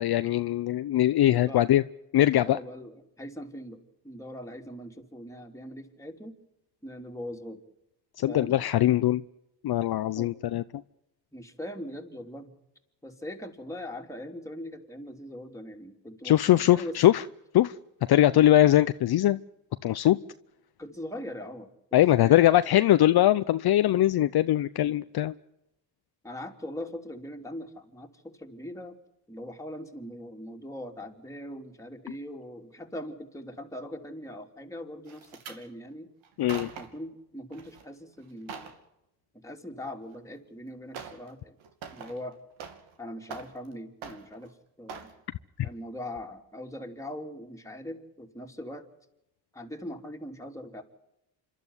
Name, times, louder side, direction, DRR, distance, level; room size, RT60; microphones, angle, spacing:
voice 1, 0.0-1.8 2.1-2.6 8.2-9.2 9.6-10.6 16.2-17.2 17.5-17.7 18.1-19.4 19.8-20.2 21.9-25.3 36.4-36.7, left 13 dB, 55° left, 12 dB, 0.7 m, -21 dB
voice 2, 1.3-1.7 2.4-6.4 6.8-7.6 8.2-8.6 10.2-10.4 11.3-12.5 13.0-17.0 20.8-21.7 22.1-22.4 26.2-28.9 29.3-36.1 36.8-38.7 39.3-41.6 41.9-42.4 43.0-45.1 45.6-48.8 49.5-50.8, left 1 dB, 5° left, 3 dB, 3.2 m, -41 dB
sound 1, 35.1-35.6 36.2-37.0 37.5-37.8 38.2-38.8 40.1-40.2 40.9-41.3 41.6-43.0 43.2-43.7 44.0-44.5 44.9-45.2 45.6-45.8 46.2-46.3, right 6 dB, 80° right, 2.7 m, -43 dB
26.5 x 12.0 x 9.7 m, 0.88 s
supercardioid pair, 70°, 46 cm